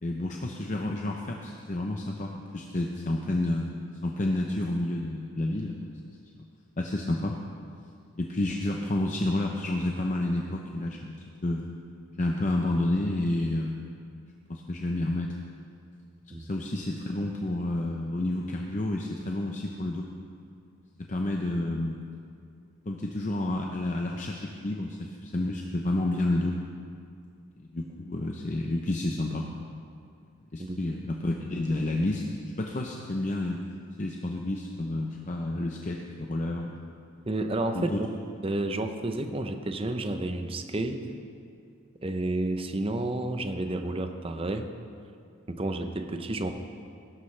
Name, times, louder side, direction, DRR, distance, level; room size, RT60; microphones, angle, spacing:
voice 1, 0.0-3.7 4.0-5.9 6.4-6.5 6.8-7.4 8.2-11.7 12.2-13.8 14.5-15.4 16.4-20.1 21.0-22.0 22.9-26.6 27.6-29.6 30.5-32.2 32.6-33.6 34.0-36.8 37.7-38.0, left 1 dB, 35° left, 1 dB, 0.6 m, -30 dB
voice 2, 37.3-37.9 38.4-41.1 42.0-44.7 45.5-46.5, right 2 dB, 25° right, 7 dB, 0.6 m, -30 dB
16.5 x 12.5 x 3.3 m, 2.3 s
head